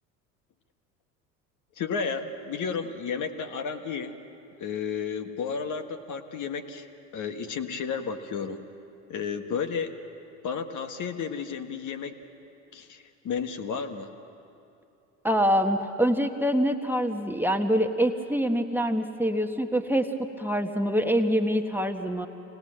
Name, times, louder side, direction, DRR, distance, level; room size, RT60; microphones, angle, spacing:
voice 1, 1.8-4.2 4.6-6.9 7.1-8.7 9.1-9.9 10.4-12.1 12.7-14.1, left 6 dB, 50° left, 6 dB, 1.6 m, -32 dB
voice 2, 15.2-22.3, equal, 5° right, 4 dB, 1.3 m, -25 dB
26.0 x 19.5 x 7.6 m, 2.8 s
hypercardioid pair, 70°, 39 cm